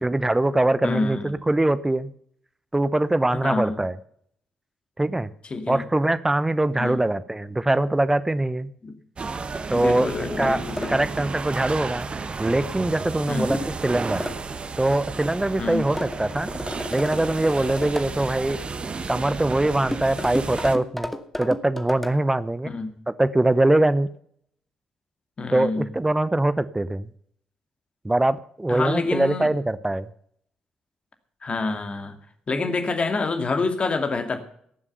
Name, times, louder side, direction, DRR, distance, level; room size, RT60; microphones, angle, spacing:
voice 1, 0.0-2.1 2.7-4.0 5.0-5.3 5.7-8.7 9.7-10.6 10.9-14.2 14.8-16.6 16.9-18.6 19.1-21.1 21.4-22.7 23.1-24.1 25.5-27.1 28.0-30.1, right 2 dB, 15° right, 15 dB, 0.8 m, -23 dB
voice 2, 0.8-1.3 3.4-3.8 5.5-5.8 6.7-7.0 8.8-8.9 9.7-11.1 13.3-13.6 15.6-15.9 22.6-23.0 25.4-25.9 28.7-29.5 31.4-32.2 32.5-34.4, left 3 dB, 35° left, 7 dB, 2.3 m, -27 dB
sound 1, 9.2-20.8, right 4 dB, 35° right, 1.2 m, -33 dB
sound 2, 10.8-11.0 13.5-13.8 14.2-14.4 16.0-18.1 19.9-22.1, left 1 dB, 5° left, 1.4 m, -32 dB
18.0 x 7.3 x 6.8 m, 0.65 s
figure-of-eight pair, 40°, 3 cm